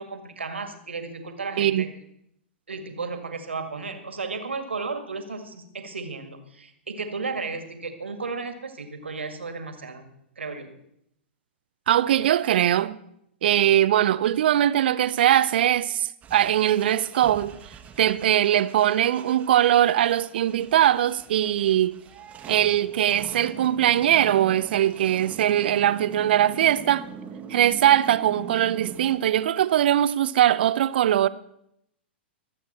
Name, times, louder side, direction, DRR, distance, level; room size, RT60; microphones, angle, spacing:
voice 1, 0.0-1.9 2.7-10.1 10.4-10.7, right 4 dB, 80° right, 2.0 m, -34 dB
voice 2, 11.9-13.0 13.4-17.5 18.0-22.0 22.5-27.1 27.5-31.3, right 11 dB, 60° right, 0.6 m, -21 dB
sound 1, 16.2-29.2, right 7 dB, 20° right, 1.4 m, -42 dB
23.5 x 8.3 x 4.3 m
figure-of-eight pair, 105°, 6 cm